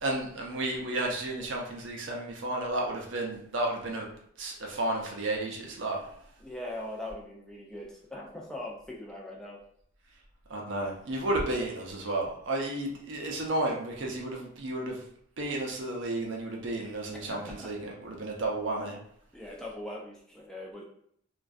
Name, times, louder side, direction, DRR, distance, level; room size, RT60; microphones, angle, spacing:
voice 1, 0.0-4.1 4.4-6.0 10.5-15.0 15.4-19.0, right 2 dB, 65° right, -1 dB, 0.5 m, -32 dB
voice 2, 6.4-9.6 17.3-17.7 19.3-20.8, left 1 dB, 5° left, -4 dB, 0.4 m, -41 dB
2.5 x 2.2 x 2.3 m, 0.67 s
head